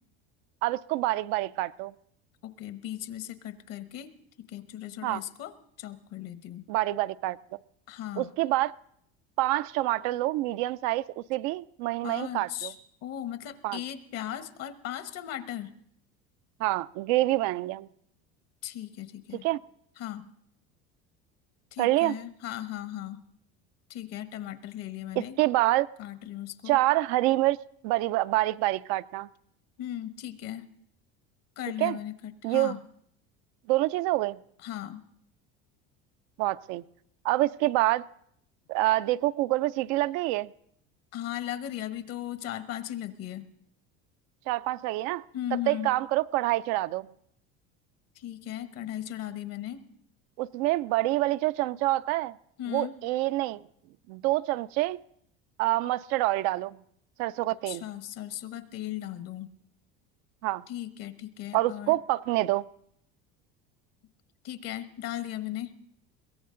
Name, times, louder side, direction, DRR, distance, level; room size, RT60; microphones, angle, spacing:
voice 1, 0.6-1.9 5.0-5.2 6.7-7.4 8.2-8.7 9.4-12.7 13.6-13.8 16.6-17.9 19.4-19.6 21.8-22.2 25.2-25.9 26.7-27.6 27.8-29.3 31.8-32.0 32.4-32.7 33.7-34.4 36.4-36.8 37.2-38.1 38.7-40.5 44.5-45.2 45.7-47.1 50.4-52.3 52.7-53.6 54.1-55.0 55.6-56.8 57.2-57.8 60.4-60.6 61.5-62.6, right 17 dB, 70° right, 0.5 m, -26 dB
voice 2, 2.4-4.1 4.5-6.7 7.9-8.3 12.0-12.7 13.0-15.7 18.6-19.4 20.0-20.3 21.7-23.2 23.9-25.4 26.0-26.8 29.8-30.6 31.6-32.8 34.6-35.0 41.1-43.5 45.3-45.9 48.2-49.9 52.6-53.0 57.7-59.5 60.7-62.0 64.4-65.8, left 12 dB, 60° left, 1.2 m, -37 dB
22.5 x 16.5 x 3.8 m
supercardioid pair, 120°, 29 cm